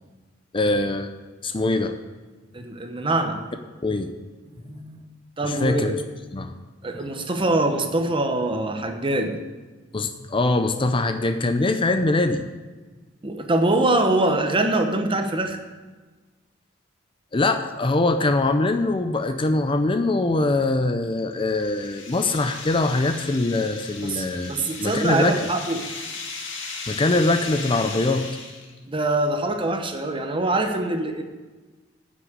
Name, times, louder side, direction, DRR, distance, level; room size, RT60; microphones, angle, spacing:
voice 1, 0.5-1.1 1.4-1.9 3.8-4.1 5.4-6.0 6.3-6.5 9.9-12.4 17.3-25.5 26.9-28.3, left 2 dB, 25° left, 8 dB, 0.5 m, -23 dB
voice 2, 2.5-3.4 4.7-5.0 5.4-5.9 6.8-9.4 13.2-15.6 24.0-25.9 28.9-31.2, right 2 dB, 25° right, 6 dB, 1.0 m, -24 dB
sound 1, 21.0-28.8, left 4 dB, 75° left, 1.9 m, -37 dB
9.8 x 6.2 x 7.9 m, 1.3 s
head